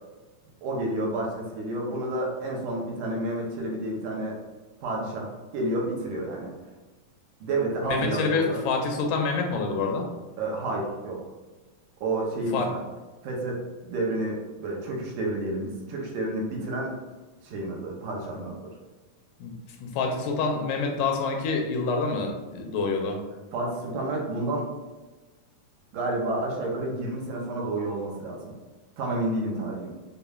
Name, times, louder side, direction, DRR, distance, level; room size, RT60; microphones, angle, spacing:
voice 1, 0.6-4.4 4.8-6.5 7.4-8.6 10.4-11.2 12.0-12.8 13.2-16.9 17.4-18.7 23.5-24.7 25.9-28.5 29.0-29.9, right 2 dB, 80° right, -1 dB, 2.2 m, -30 dB
voice 2, 7.9-10.1 12.5-12.7 19.4-23.2, left 4 dB, 85° left, 2 dB, 2.2 m, -27 dB
6.6 x 2.2 x 2.3 m, 1.3 s
omnidirectional pair, 3.5 m